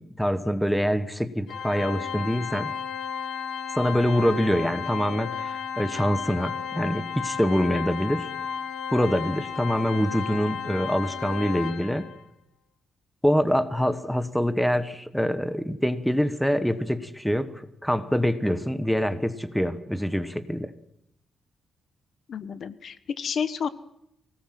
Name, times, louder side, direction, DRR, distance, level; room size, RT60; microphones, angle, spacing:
voice 1, 0.0-2.7 3.7-8.3 8.9-12.1 13.2-20.7, equal, ahead, 11 dB, 1.2 m, -25 dB
Organ, 1.5-12.2, left 7 dB, 80° left, 1.4 m, -33 dB
voice 2, 22.3-23.7, left 7 dB, 50° left, 14 dB, 1.1 m, -30 dB
24.5 x 18.0 x 7.6 m, 0.78 s
cardioid pair, 150°, 0 cm